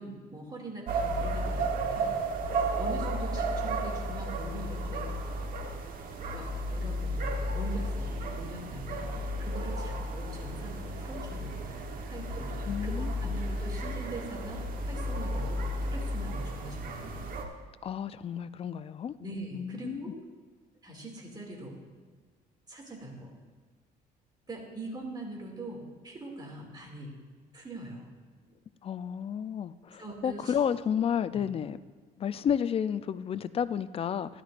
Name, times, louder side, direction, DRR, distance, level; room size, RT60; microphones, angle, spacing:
voice 1, 0.0-2.2 2.7-5.1 6.3-11.6 12.1-12.5 12.8-17.3 19.2-20.1 20.8-21.8 22.7-23.3 24.5-27.1 27.5-28.1 30.0-30.6, right 2 dB, 25° right, 0 dB, 2.4 m, -42 dB
sound 1, 0.9-17.4, right 1 dB, 55° right, 1.2 m, -33 dB
voice 2, 12.7-13.3 17.8-19.1 19.5-20.1 28.8-31.8 32.2-34.4, left 8 dB, 35° left, 14 dB, 0.4 m, -31 dB
13.0 x 11.5 x 2.5 m, 1.5 s
cardioid pair, 110°, 17 cm